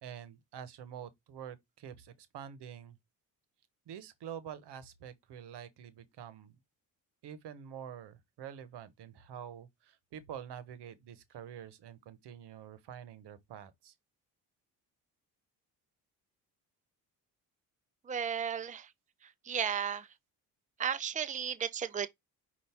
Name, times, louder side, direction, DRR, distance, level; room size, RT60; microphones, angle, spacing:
voice 1, 0.0-3.0 3.9-6.5 7.2-13.9, right 9 dB, 70° right, 1.1 m, -47 dB
voice 2, 18.1-18.9 19.4-20.1 20.8-22.1, right 7 dB, 20° right, 0.6 m, -34 dB
5.5 x 2.6 x 3.5 m
supercardioid pair, 65°, 42 cm